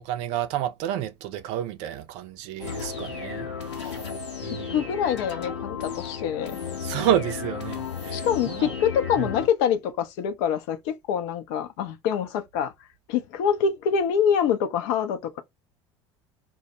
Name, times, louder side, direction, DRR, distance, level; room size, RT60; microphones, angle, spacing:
voice 1, 0.0-4.0 4.4-4.8 6.8-8.7 9.2-9.3, right 11 dB, 50° right, 0.5 m, -30 dB
sound 1, 2.6-9.5, left 6 dB, 70° left, 0.8 m, -34 dB
voice 2, 4.4-6.6 8.1-12.7 13.1-15.4, left 7 dB, 55° left, 0.5 m, -25 dB
2.1 x 2.1 x 2.8 m
figure-of-eight pair, 70°, 15 cm